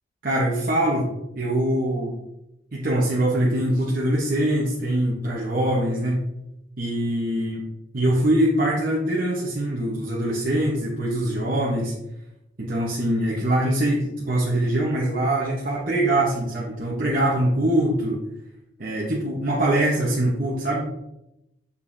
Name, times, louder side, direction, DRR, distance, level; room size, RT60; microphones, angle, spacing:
voice 1, 0.2-2.1 2.7-6.3 6.8-7.6 7.9-11.9 12.6-18.2 18.8-20.9, right 1 dB, 50° right, -5 dB, 1.0 m, -23 dB
6.9 x 5.3 x 2.7 m, 0.88 s
head